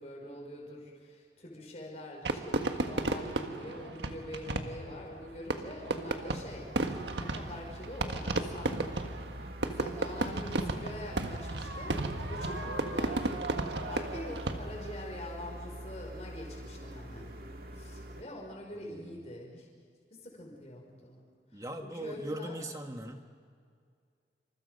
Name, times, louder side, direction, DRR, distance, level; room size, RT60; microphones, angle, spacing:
voice 1, 0.0-6.7 7.2-9.1 9.6-13.5 13.9-17.3 17.7-19.7 20.1-21.2 21.5-22.6, left 1 dB, 40° left, -1 dB, 5.3 m, -45 dB
Fireworks, 2.2-15.0, right 2 dB, 85° right, 1.6 m, -34 dB
sound 1, 4.2-18.2, equal, 55° right, 2.0 m, -46 dB
voice 2, 18.8-19.2 21.5-23.3, right 1 dB, 20° right, 5 dB, 1.5 m, -40 dB
28.0 x 26.5 x 5.5 m, 2.2 s
head